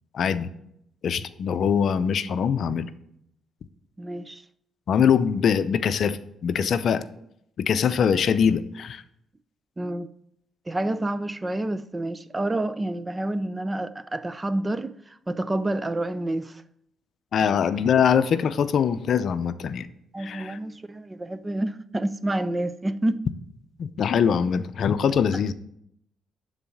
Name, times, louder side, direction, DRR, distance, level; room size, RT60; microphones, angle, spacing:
voice 1, 0.1-0.5 1.0-2.9 4.9-7.0 7.6-9.0 17.3-19.9 20.2-20.6 23.8-25.5, left 7 dB, 60° left, 0.6 m, -23 dB
voice 2, 4.0-4.4 9.8-10.1 10.7-14.9 15.3-16.6 20.1-23.2, right 1 dB, 20° right, 0.5 m, -28 dB
12.0 x 4.1 x 7.7 m
cardioid pair, 90°, 0 cm